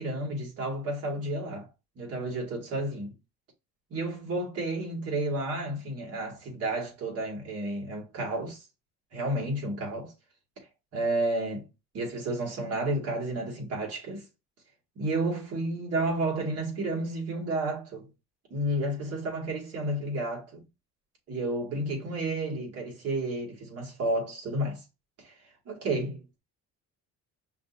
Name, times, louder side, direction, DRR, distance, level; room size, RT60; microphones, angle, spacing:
voice 1, 0.0-1.7 2.0-3.1 3.9-8.7 9.1-10.1 10.9-11.7 11.9-14.2 15.0-18.1 18.5-20.7 21.3-24.8 25.2-26.4, right 1 dB, 45° right, 2.5 m, -31 dB
5.7 x 2.9 x 2.7 m
cardioid pair, 180°, 34 cm